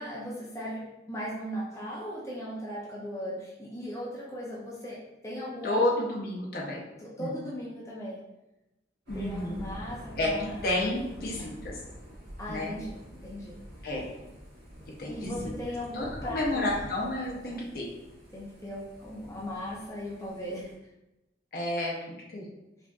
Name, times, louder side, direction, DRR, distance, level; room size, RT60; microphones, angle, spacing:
voice 1, 0.0-5.8 7.0-8.2 9.1-10.6 11.4-11.6 12.4-13.6 15.0-16.8 17.5-17.7 18.3-20.7, equal, 15° left, -5 dB, 0.5 m, -38 dB
voice 2, 5.6-6.8 7.2-7.3 9.1-9.6 10.2-11.8 12.5-12.7 13.8-14.1 15.0-15.5 15.9-17.9 21.5-22.5, left 1 dB, 55° left, -2 dB, 0.7 m, -31 dB
Thunder / Rain, 9.1-20.7, equal, 75° right, 1.4 m, -46 dB
4.9 x 2.5 x 2.4 m, 0.95 s
head